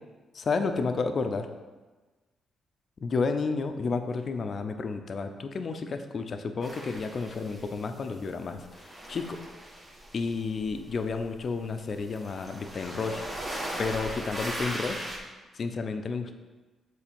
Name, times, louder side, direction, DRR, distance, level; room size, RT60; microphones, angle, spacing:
voice 1, 0.3-1.5 3.0-8.6 9.1-9.4 10.1-13.2 13.8-15.1 15.5-16.4, left 4 dB, 50° left, 7 dB, 0.6 m, -31 dB
sound 1, 6.6-8.2 8.5-15.2, equal, 20° right, 1.7 m, -39 dB
7.3 x 3.9 x 5.3 m, 1.3 s
cardioid pair, 90°, 0 cm